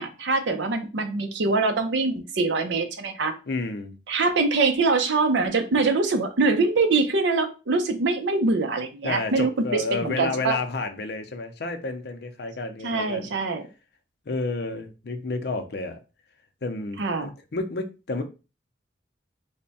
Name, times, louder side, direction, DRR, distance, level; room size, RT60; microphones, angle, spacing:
voice 1, 0.0-3.3 4.1-10.5 12.8-13.6 17.0-17.3, right 3 dB, 75° right, 0.6 m, -24 dB
voice 2, 3.5-3.9 9.0-13.3 14.3-16.0 16.6-18.2, left 3 dB, 60° left, 0.6 m, -30 dB
3.4 x 2.2 x 4.0 m
head